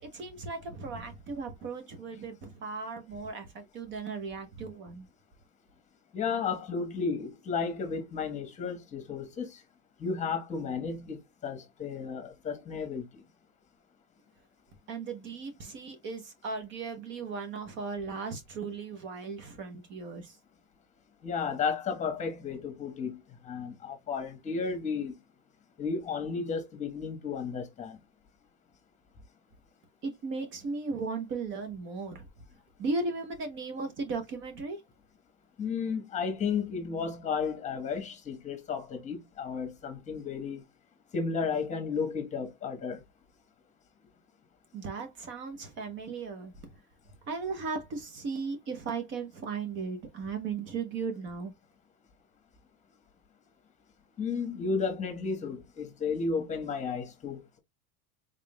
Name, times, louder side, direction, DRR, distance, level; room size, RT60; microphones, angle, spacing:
voice 1, 0.0-5.1 14.9-20.4 30.0-32.3 32.8-34.8 44.7-46.5 47.3-51.5, right 4 dB, 40° right, 0.9 m, -36 dB
voice 2, 6.1-9.6 10.0-13.0 21.2-25.1 25.8-28.0 35.6-40.6 41.1-43.0 54.2-57.6, left 5 dB, 25° left, 1.1 m, -33 dB
4.0 x 3.5 x 2.2 m
supercardioid pair, 150°, 30 cm